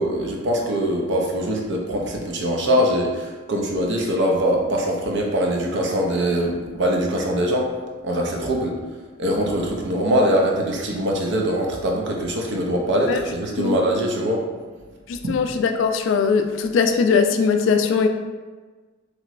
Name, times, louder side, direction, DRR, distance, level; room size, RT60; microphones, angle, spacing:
voice 1, 0.0-7.7 8.0-8.8 9.2-14.5 15.2-15.3, equal, 65° right, 0 dB, 0.5 m, -22 dB
voice 2, 15.1-18.1, left 5 dB, 70° left, 6 dB, 0.3 m, -20 dB
3.0 x 2.9 x 2.5 m, 1.3 s
head